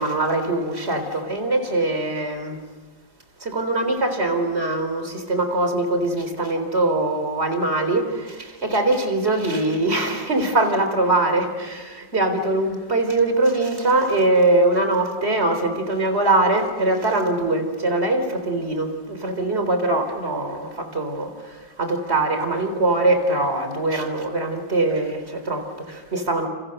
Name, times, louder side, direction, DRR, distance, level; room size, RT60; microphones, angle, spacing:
voice 1, 0.0-2.6 3.4-26.5, right 2 dB, 35° right, 4.1 m, -22 dB
29.5 x 29.5 x 6.7 m
omnidirectional pair, 2.0 m